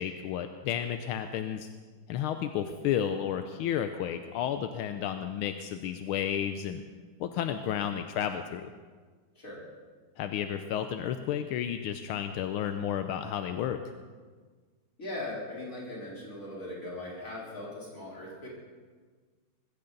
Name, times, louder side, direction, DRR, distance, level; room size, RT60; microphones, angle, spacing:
voice 1, 0.0-1.7 2.1-6.8 7.2-8.7 10.2-13.8, left 9 dB, 80° left, 8 dB, 1.5 m, -32 dB
voice 2, 15.0-18.5, left 1 dB, 35° left, -5 dB, 4.7 m, -39 dB
20.5 x 15.5 x 4.0 m, 1.5 s
omnidirectional pair, 2.3 m